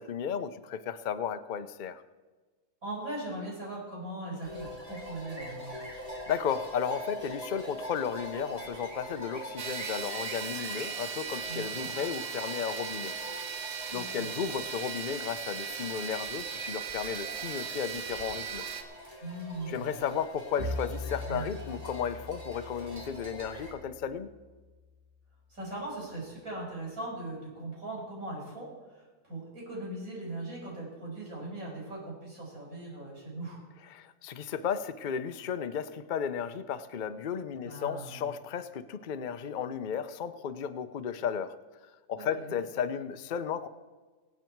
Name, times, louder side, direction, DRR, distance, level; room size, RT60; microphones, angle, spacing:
voice 1, 0.0-2.0 6.3-13.1 13.9-18.6 19.7-24.3 33.9-41.6 42.1-43.7, left 7 dB, 90° left, 10 dB, 0.4 m, -34 dB
voice 2, 2.8-5.8 11.5-11.9 13.9-14.3 19.2-19.9 21.3-21.5 25.5-33.6 37.6-38.2 42.2-42.5, right 2 dB, 50° right, -4 dB, 6.5 m, -40 dB
sound 1, 4.4-23.7, equal, 20° right, 3.1 m, -44 dB
sound 2, 9.6-18.8, right 6 dB, 80° right, 1.8 m, -38 dB
Bowed string instrument, 20.6-24.8, left 2 dB, ahead, 1.9 m, -41 dB
25.0 x 8.4 x 4.6 m, 1.3 s
omnidirectional pair, 1.8 m